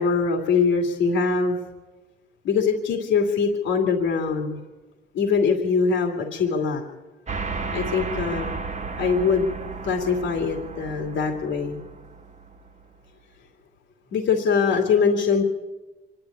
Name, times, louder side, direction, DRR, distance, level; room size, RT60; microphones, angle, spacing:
voice 1, 0.0-1.6 2.4-4.6 5.1-6.8 7.7-8.5 9.0-9.5 9.8-11.8 14.1-15.4, left 5 dB, 75° left, 2 dB, 2.6 m, -22 dB
sound 1, 7.3-13.1, right 4 dB, 35° right, 1.4 m, -34 dB
25.5 x 11.5 x 9.8 m, 1.2 s
cardioid pair, 90°, 20 cm